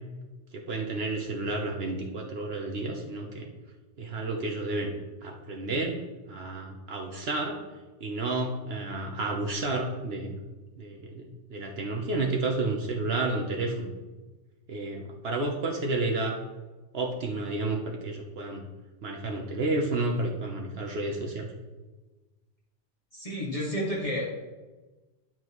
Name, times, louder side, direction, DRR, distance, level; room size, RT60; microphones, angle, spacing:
voice 1, 0.5-3.5 4.0-4.9 5.2-6.0 6.3-7.5 8.0-10.4 10.8-13.9 14.7-16.4 16.9-18.6 19.0-21.5, right 2 dB, 70° right, 1 dB, 1.1 m, -31 dB
voice 2, 23.1-24.4, equal, 35° left, -7 dB, 2.0 m, -31 dB
10.5 x 7.6 x 3.1 m, 1.2 s
omnidirectional pair, 1.1 m